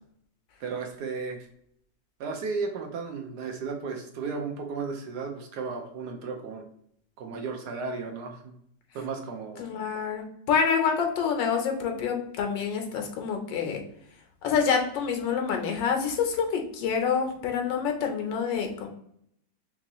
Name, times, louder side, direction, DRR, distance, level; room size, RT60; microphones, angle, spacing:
voice 1, 0.6-1.5 2.2-6.7 7.2-8.5 8.9-9.6, right 4 dB, 70° right, 3 dB, 1.1 m, -34 dB
voice 2, 9.6-13.8 14.4-18.9, left 6 dB, 85° left, 3 dB, 1.4 m, -27 dB
3.6 x 3.0 x 2.7 m, 0.70 s
omnidirectional pair, 2.0 m